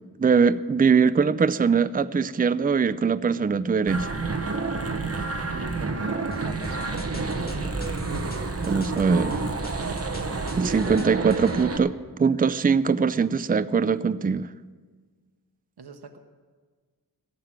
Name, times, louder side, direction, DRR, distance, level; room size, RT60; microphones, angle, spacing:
voice 1, 0.2-4.1 8.6-9.4 10.6-14.5, right 5 dB, 25° right, 14 dB, 0.4 m, -22 dB
sound 1, 3.9-11.8, right 3 dB, 40° right, 1.2 m, -29 dB
voice 2, 5.4-7.5 15.8-16.2, right 4 dB, 85° right, 5 dB, 1.0 m, -40 dB
sound 2, 6.3-11.6, left 1 dB, 25° left, 1.5 m, -41 dB
14.5 x 7.8 x 8.8 m, 1.5 s
wide cardioid pair, 60°, 38 cm